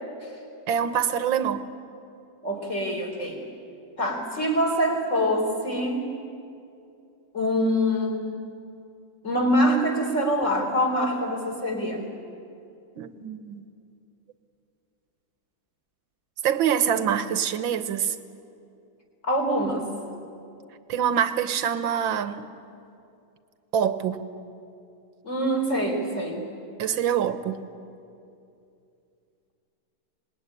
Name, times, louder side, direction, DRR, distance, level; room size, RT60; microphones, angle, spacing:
voice 1, 0.7-1.7 13.0-13.6 16.4-18.2 20.9-22.5 23.7-24.2 26.8-27.6, right 8 dB, 85° right, 11 dB, 1.9 m, -25 dB
voice 2, 2.4-3.4 4.0-6.1 7.3-8.3 9.2-12.1 19.2-19.9 25.2-26.5, equal, 40° left, 2 dB, 4.1 m, -25 dB
26.0 x 20.5 x 9.9 m, 2.6 s
omnidirectional pair, 2.1 m